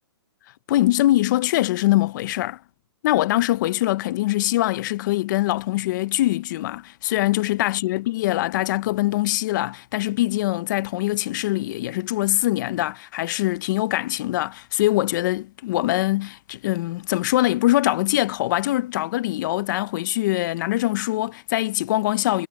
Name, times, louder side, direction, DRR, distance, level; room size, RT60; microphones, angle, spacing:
voice 1, 0.7-2.6 3.0-22.5, left 16 dB, 45° left, 0.7 m, -23 dB
hypercardioid pair, 155°, 14 cm